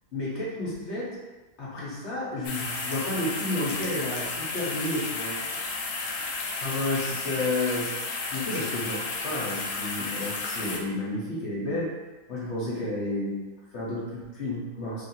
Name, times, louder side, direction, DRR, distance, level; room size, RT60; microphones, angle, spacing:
voice 1, 0.1-1.2 1.6-5.4 6.6-8.0 8.2-11.9 12.3-15.1, left 1 dB, 50° left, -6 dB, 1.3 m, -31 dB
sound 1, 2.4-10.8, left 3 dB, 70° left, 0.5 m, -32 dB
3.2 x 2.7 x 4.4 m, 1.2 s
omnidirectional pair, 1.6 m